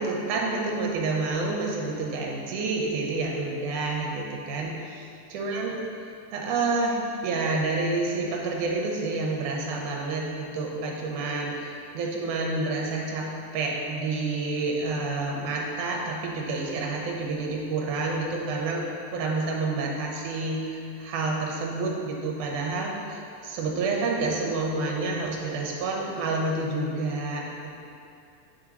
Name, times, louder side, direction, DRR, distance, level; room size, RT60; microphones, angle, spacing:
voice 1, 0.0-5.8 6.3-27.7, right 3 dB, 80° right, -1 dB, 2.3 m, -29 dB
8.3 x 6.5 x 3.0 m, 2.5 s
omnidirectional pair, 3.7 m